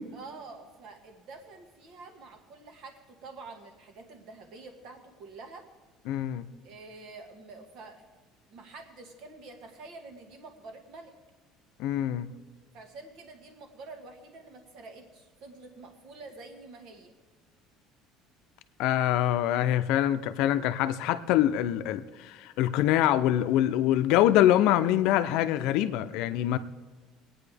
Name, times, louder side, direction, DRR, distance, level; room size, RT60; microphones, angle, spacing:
voice 1, 0.1-5.7 6.6-8.1 8.5-11.1 12.7-17.1, right 3 dB, 55° right, 1.8 m, -47 dB
voice 2, 6.1-6.5 11.8-12.3 18.8-26.6, left 12 dB, 65° left, 0.6 m, -24 dB
21.0 x 9.2 x 3.5 m
cardioid pair, 165°, 0 cm